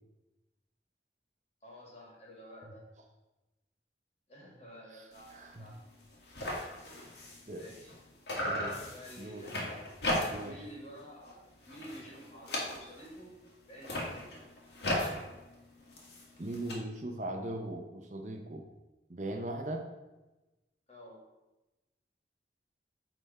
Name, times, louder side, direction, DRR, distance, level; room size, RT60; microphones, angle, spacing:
voice 1, 1.6-2.8 4.3-5.3 5.6-5.8 7.1-7.9 8.8-9.8 10.4-13.3 13.7-14.2 20.9-21.2, equal, 35° left, -3 dB, 2.0 m, -51 dB
sound 1, 5.1-5.4 5.7-5.8 6.0-8.0 8.3-10.6 11.0-11.3 11.6-13.2 13.7-16.7, left 1 dB, 75° left, 1.8 m, -37 dB
voice 2, 5.3-5.6 7.5-7.6 8.4-8.8 9.2-9.5 10.3-10.6 16.4-18.6 19.1-19.9, right 1 dB, 40° right, 3 dB, 0.6 m, -39 dB
9.0 x 3.6 x 4.2 m, 1.1 s
head